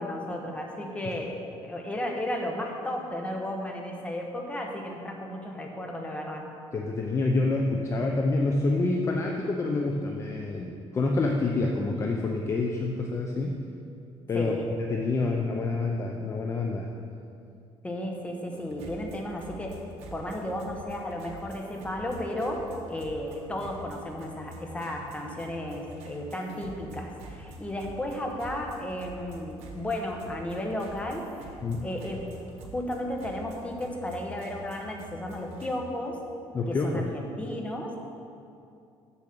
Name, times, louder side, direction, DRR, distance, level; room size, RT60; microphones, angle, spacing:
voice 1, 0.0-6.4 14.3-14.7 15.2-15.3 17.8-19.8 20.1-31.2 31.8-32.2 32.6-36.2 36.7-38.0, left 1 dB, 10° left, 1 dB, 1.1 m, -34 dB
voice 2, 6.7-13.6 14.3-14.6 14.9-16.9 31.6-31.9 36.5-37.0, left 3 dB, 25° left, 1 dB, 0.6 m, -27 dB
sound 1, 18.5-35.8, right 1 dB, 85° right, 1.3 m, -46 dB
7.3 x 6.9 x 6.6 m, 2.5 s
cardioid pair, 145°, 10 cm